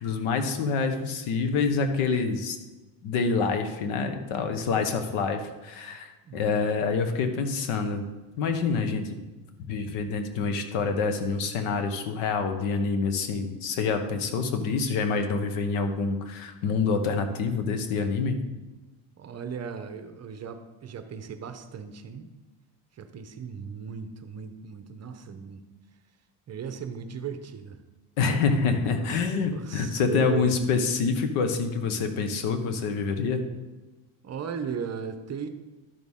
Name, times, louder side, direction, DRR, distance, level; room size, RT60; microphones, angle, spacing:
voice 1, 0.0-2.6 3.0-8.0 8.4-9.2 9.6-18.4 28.2-33.5, left 4 dB, 85° left, 7 dB, 1.2 m, -27 dB
voice 2, 6.2-6.9 19.2-22.3 22.9-25.7 26.5-27.8 28.6-30.6 34.2-35.5, right 7 dB, 30° right, 8 dB, 0.7 m, -37 dB
12.0 x 6.3 x 3.7 m, 1.2 s
cardioid pair, 120°, 49 cm